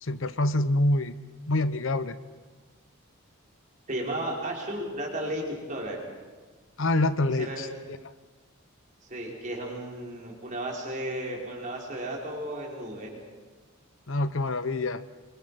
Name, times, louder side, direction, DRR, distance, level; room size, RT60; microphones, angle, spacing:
voice 1, 0.0-1.1 1.5-2.2 6.8-8.0 14.1-15.0, left 2 dB, 60° left, 13 dB, 0.9 m, -26 dB
voice 2, 3.9-5.4 5.7-6.0 7.4-7.7 9.1-13.1, right 1 dB, 35° right, -1 dB, 5.3 m, -34 dB
27.5 x 24.5 x 5.9 m, 1.3 s
head